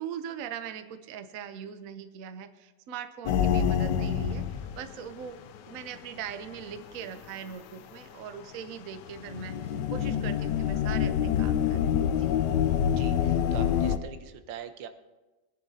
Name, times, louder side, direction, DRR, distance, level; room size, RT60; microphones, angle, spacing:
voice 1, 0.0-5.4 5.7-12.3, right 8 dB, 60° right, 9 dB, 1.0 m, -40 dB
sound 1, 3.3-5.2 5.5-5.6 6.6-6.8 8.9-14.0, left 9 dB, 80° left, 1.2 m, -26 dB
voice 2, 13.0-14.9, right 9 dB, 85° right, 9 dB, 1.5 m, -42 dB
21.5 x 10.5 x 2.8 m, 1.2 s
omnidirectional pair, 1.9 m